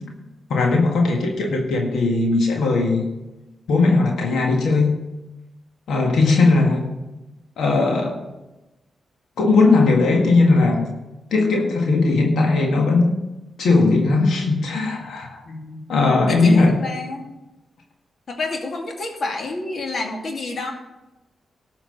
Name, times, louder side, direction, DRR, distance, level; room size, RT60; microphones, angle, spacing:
voice 1, 0.5-3.1 3.7-4.9 5.9-6.9 7.6-8.2 9.4-10.9 11.3-13.1 13.6-15.4 15.9-16.8, left 3 dB, 80° left, 1 dB, 1.7 m, -18 dB
voice 2, 15.4-15.8 16.3-17.4 18.3-20.7, left 2 dB, 65° left, 2 dB, 2.3 m, -29 dB
13.0 x 5.8 x 6.8 m, 1.0 s
supercardioid pair, 50°, 0 cm